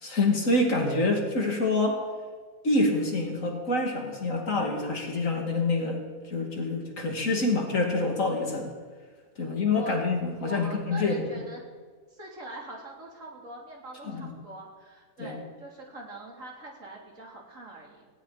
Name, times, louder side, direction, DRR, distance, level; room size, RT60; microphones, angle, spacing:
voice 1, 0.0-2.0 2.6-6.0 6.2-8.7 9.4-11.3 14.1-14.3 15.2-15.4, left 2 dB, 55° left, 2 dB, 2.7 m, -26 dB
voice 2, 9.4-10.0 10.3-11.6 12.1-18.1, right 1 dB, 55° right, -2 dB, 3.7 m, -43 dB
19.0 x 16.5 x 4.1 m, 1.5 s
omnidirectional pair, 1.6 m